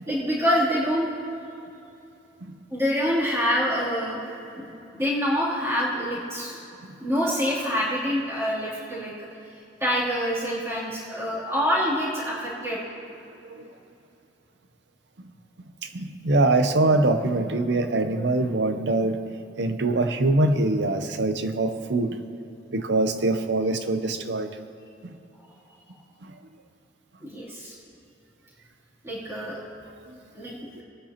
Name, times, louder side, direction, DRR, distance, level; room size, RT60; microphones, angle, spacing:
voice 1, 0.1-1.1 2.7-4.2 4.5-6.6 7.0-9.3 9.8-12.8 27.2-27.8 29.0-29.6 30.3-30.8, equal, 15° right, -9 dB, 3.1 m, -26 dB
voice 2, 15.9-19.2 19.6-22.2 22.7-24.5 25.0-25.2 26.2-26.3, right 2 dB, 80° right, 9 dB, 0.8 m, -23 dB
21.0 x 9.9 x 2.9 m, 2.8 s
head